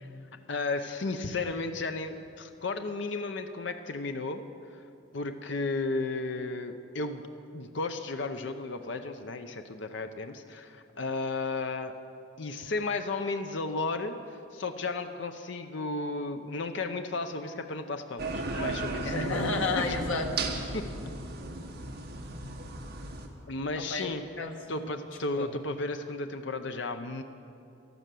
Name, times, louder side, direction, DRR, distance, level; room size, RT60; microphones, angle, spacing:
voice 1, 0.5-4.4 4.7-4.8 5.1-7.2 7.5-12.0 12.4-19.1 19.8-19.9 20.7-20.9 23.5-24.2 24.7-27.2, left 3 dB, 65° left, 7 dB, 0.7 m, -34 dB
sound 1, 18.2-23.3, right 2 dB, 55° right, 1.4 m, -35 dB
voice 2, 19.0-20.3 23.8-24.9 25.4-25.5, left 3 dB, 90° left, 3 dB, 1.4 m, -32 dB
12.5 x 12.0 x 7.6 m, 2.7 s
head